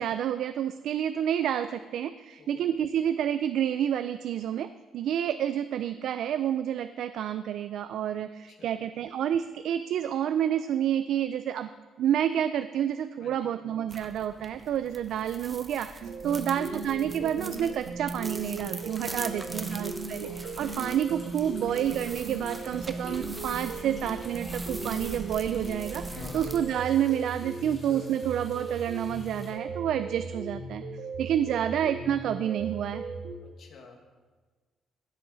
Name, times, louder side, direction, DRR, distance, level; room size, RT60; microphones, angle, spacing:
voice 1, 0.0-4.7 4.9-11.7 12.0-30.8 31.2-33.0, right 10 dB, 65° right, 11 dB, 0.3 m, -29 dB
voice 2, 8.5-8.8 13.2-13.5 16.2-16.5 19.2-19.8 26.2-26.5 33.4-34.0, left 3 dB, 50° left, 3 dB, 1.6 m, -49 dB
sound 1, 13.9-26.6, right 2 dB, 10° right, 0.7 m, -43 dB
sound 2, 16.0-33.4, right 3 dB, 85° right, 1.6 m, -37 dB
sound 3, 18.6-29.5, left 1 dB, 20° left, 3.3 m, -50 dB
16.5 x 7.6 x 3.9 m, 1.4 s
cardioid pair, 160°, 0 cm